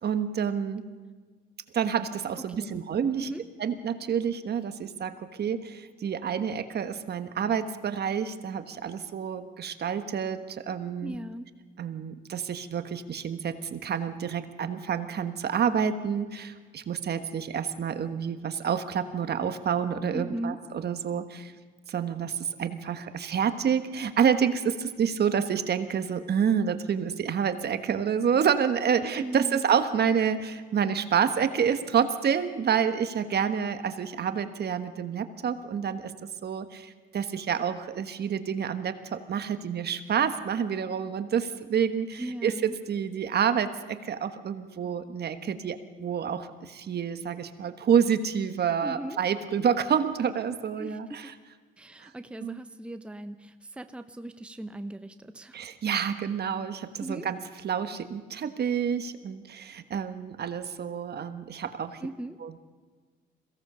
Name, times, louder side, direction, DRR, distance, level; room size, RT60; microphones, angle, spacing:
voice 1, 0.0-0.8 1.7-3.3 3.6-11.1 11.8-21.5 21.9-36.1 36.4-51.3 52.4-52.6 55.5-57.4 57.6-62.0 62.4-62.6, right 7 dB, 55° right, 9 dB, 1.4 m, -28 dB
voice 2, 11.0-11.5 20.1-20.6 29.2-29.6 42.2-42.8 48.8-49.2 50.8-51.4 51.8-55.6 57.0-57.3 62.0-62.4, right 1 dB, 5° right, 9 dB, 0.8 m, -38 dB
22.0 x 17.0 x 6.9 m, 1.5 s
cardioid pair, 90°, 20 cm